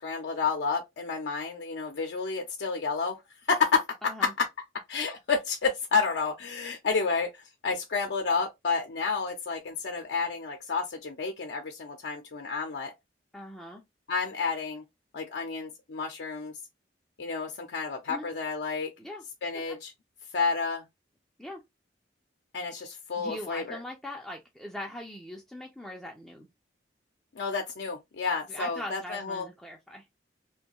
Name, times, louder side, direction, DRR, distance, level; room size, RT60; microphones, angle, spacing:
voice 1, 0.0-3.2 3.5-4.5 4.9-12.9 14.1-14.8 15.1-16.5 17.2-18.9 19.4-19.9 20.3-20.8 22.5-23.8 27.3-29.5, left 5 dB, 70° left, 0.5 m, -30 dB
voice 2, 4.0-4.3 13.3-13.8 18.1-18.3 19.0-19.2 19.7-19.8 21.4-21.6 23.2-26.5 28.5-30.1, left 1 dB, ahead, 0.3 m, -41 dB
2.6 x 2.2 x 2.9 m
head